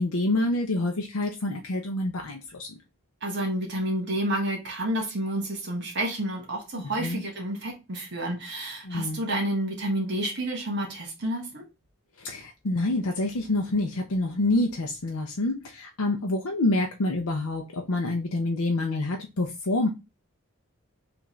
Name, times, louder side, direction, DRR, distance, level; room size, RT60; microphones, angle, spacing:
voice 1, 0.0-2.7 7.0-7.2 8.8-9.2 12.2-19.9, left 2 dB, 85° left, 0.7 m, -27 dB
voice 2, 3.2-11.6, right 1 dB, 55° right, 1.5 m, -30 dB
5.8 x 2.6 x 3.1 m
head